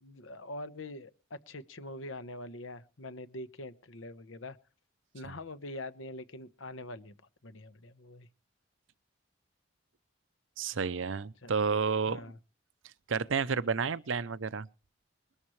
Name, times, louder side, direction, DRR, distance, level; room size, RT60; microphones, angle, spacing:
voice 1, 0.0-4.6 5.1-7.1 7.4-8.3 11.4-11.5 12.1-12.4, left 1 dB, 85° left, 1.2 m, -44 dB
voice 2, 10.6-12.3 12.8-14.7, right 5 dB, 75° right, 0.7 m, -31 dB
21.5 x 13.0 x 3.2 m
head